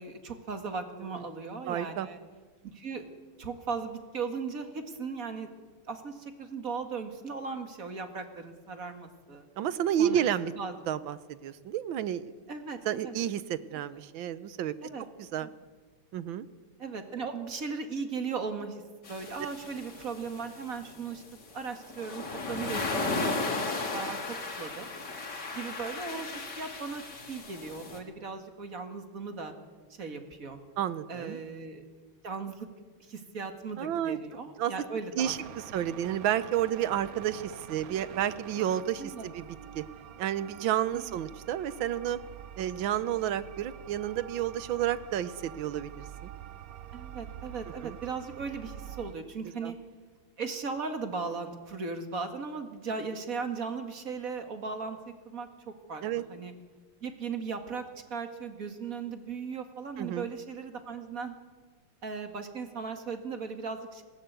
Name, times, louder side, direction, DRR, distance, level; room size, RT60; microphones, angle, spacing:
voice 1, 0.0-2.2 2.6-3.0 3.4-5.5 5.9-9.5 10.0-10.3 10.6-10.7 12.5-13.2 13.7-13.8 14.8-15.0 15.4-15.5 16.8-18.8 19.1-21.2 21.5-24.9 25.5-27.0 27.3-29.5 30.0-30.6 31.1-31.8 32.2-32.7 33.0-35.3 35.9-36.0 39.0-39.3 41.1-41.2 46.9-49.7 50.4-55.5 55.9-56.5 57.0-57.8 58.1-61.3 62.0-64.0, right 5 dB, 45° right, 7 dB, 2.2 m, -37 dB
voice 2, 1.7-2.1 9.6-10.5 10.9-12.3 12.8-14.7 15.2-15.5 16.1-16.5 30.8-31.4 33.8-34.2 34.6-34.7 35.2-39.5 39.7-39.8 40.2-42.2 42.6-46.3 47.8-48.0 49.6-49.7 56.0-56.2 60.0-60.3, right 10 dB, 75° right, 15 dB, 1.6 m, -31 dB
sound 1, 19.0-28.0, left 3 dB, 55° left, 3.1 m, -35 dB
sound 2, 35.2-49.1, right 10 dB, 60° right, 1.0 m, -46 dB
19.5 x 17.5 x 8.1 m, 1.4 s
omnidirectional pair, 2.3 m